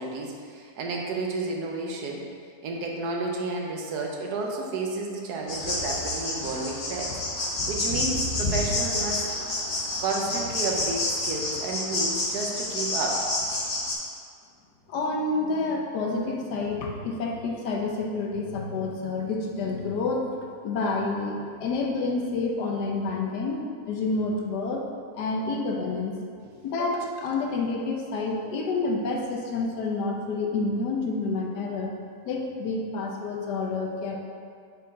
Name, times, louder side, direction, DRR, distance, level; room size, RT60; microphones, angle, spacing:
voice 1, 0.0-2.2 2.6-7.1 7.7-9.3 10.0-13.3, right 3 dB, 75° right, 0 dB, 1.3 m, -31 dB
sound 1, 5.5-13.9, left 2 dB, 40° left, 1.0 m, -29 dB
voice 2, 14.9-20.3 20.6-23.6 23.8-24.8 25.1-26.2 26.6-31.9 32.3-34.1, left 3 dB, 80° left, 0 dB, 1.4 m, -28 dB
6.2 x 4.5 x 4.1 m, 2.2 s
omnidirectional pair, 1.8 m